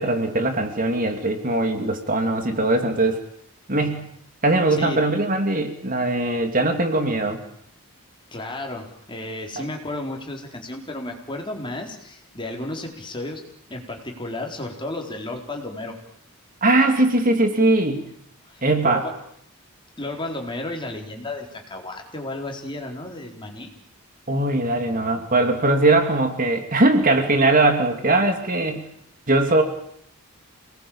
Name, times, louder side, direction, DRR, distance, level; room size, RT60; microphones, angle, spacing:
voice 1, 0.0-3.2 3.7-4.1 4.4-7.4 9.6-9.7 16.6-18.0 18.6-19.0 24.3-28.8 29.3-29.6, right 2 dB, 40° right, 6 dB, 2.7 m, -20 dB
voice 2, 8.3-13.4 13.7-15.9 18.5-19.1 20.0-23.7, left 1 dB, 20° left, 2 dB, 4.3 m, -33 dB
28.0 x 20.0 x 8.8 m, 0.70 s
head